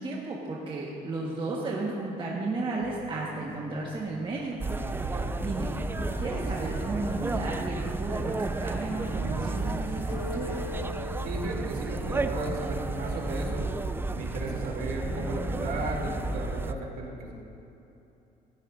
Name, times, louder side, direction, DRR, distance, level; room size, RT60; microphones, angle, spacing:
voice 1, 0.0-4.6 5.0-5.1 5.4-5.7 6.2-10.6, right 2 dB, 30° right, -4 dB, 1.5 m, -33 dB
sound 1, 2.8-5.4 6.0-16.4, left 3 dB, 60° left, 1.4 m, -45 dB
sound 2, 4.6-16.7, right 3 dB, 15° right, 0.4 m, -32 dB
voice 2, 11.2-13.7 14.1-17.3, right 2 dB, 65° right, -2 dB, 3.0 m, -35 dB
17.0 x 15.5 x 2.7 m, 2.9 s
cardioid pair, 110°, 17 cm